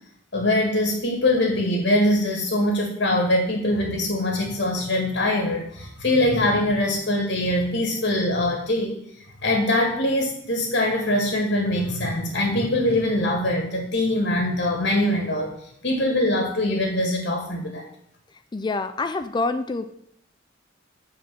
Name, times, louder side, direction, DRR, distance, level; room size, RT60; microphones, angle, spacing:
voice 1, 0.3-9.0 9.4-15.5 15.8-17.9, left 1 dB, 65° left, 1 dB, 1.7 m, -23 dB
voice 2, 18.3-19.9, left 3 dB, 25° left, 9 dB, 0.4 m, -27 dB
8.0 x 4.3 x 6.2 m, 0.70 s
head